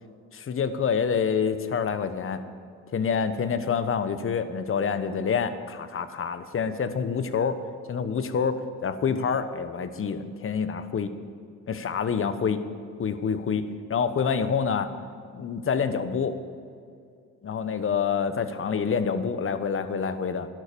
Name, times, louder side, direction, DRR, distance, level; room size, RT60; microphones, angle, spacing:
voice 1, 0.3-2.4 2.9-7.6 7.9-11.1 11.7-12.6 13.0-14.9 15.3-16.4 17.4-20.5, left 6 dB, 45° left, 11 dB, 1.2 m, -27 dB
12.5 x 11.0 x 6.9 m, 2.3 s
supercardioid pair, 70°, 31 cm